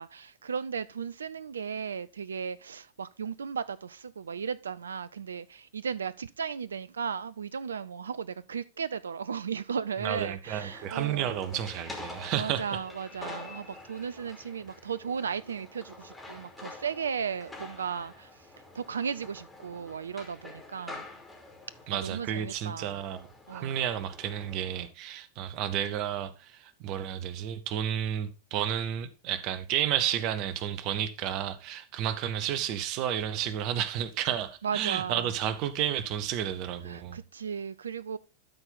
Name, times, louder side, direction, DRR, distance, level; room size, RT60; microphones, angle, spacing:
voice 1, 0.0-11.3 12.3-18.5 18.7-21.0 21.9-23.0 23.5-23.8 34.6-35.3 36.9-38.2, right 6 dB, 70° right, 0.3 m, -35 dB
voice 2, 10.0-12.8 21.9-37.2, right 10 dB, 40° right, 0.8 m, -31 dB
sound 1, 10.4-24.9, left 2 dB, 5° left, 2.8 m, -47 dB
12.5 x 4.5 x 3.8 m
figure-of-eight pair, 90°, 0 cm